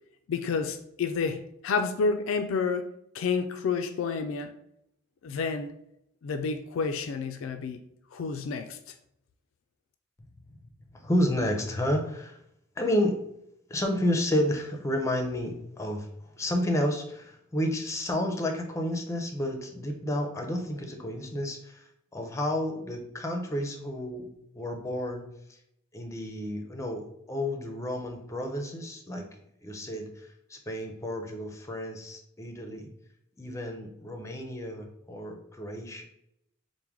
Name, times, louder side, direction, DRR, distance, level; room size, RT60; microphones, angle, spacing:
voice 1, 0.3-2.9 3.1-4.5 5.2-5.7 6.2-7.8 8.1-8.8, left 5 dB, 75° left, 8 dB, 0.3 m, -29 dB
voice 2, 10.6-12.4 12.8-13.2 13.7-16.1 16.4-21.8 22.1-24.3 24.5-25.6 25.9-29.2 29.6-32.9 33.4-36.0, left 1 dB, 15° left, 3 dB, 0.5 m, -31 dB
4.5 x 2.1 x 3.5 m, 0.77 s
head